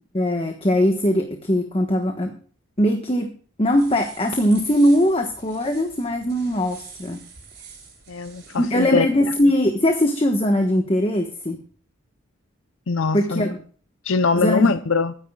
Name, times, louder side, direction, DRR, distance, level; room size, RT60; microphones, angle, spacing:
voice 1, 0.0-2.4 2.8-3.3 3.6-7.2 8.6-11.6 13.1-13.6 14.4-14.8, equal, 25° left, 1.3 m, -20 dB
sound 1, 3.7-8.9, right 5 dB, 50° right, 6.9 m, -45 dB
voice 2, 8.1-9.1 12.9-13.5 14.0-15.1, left 4 dB, 75° left, 0.7 m, -22 dB
21.5 x 10.0 x 2.4 m
head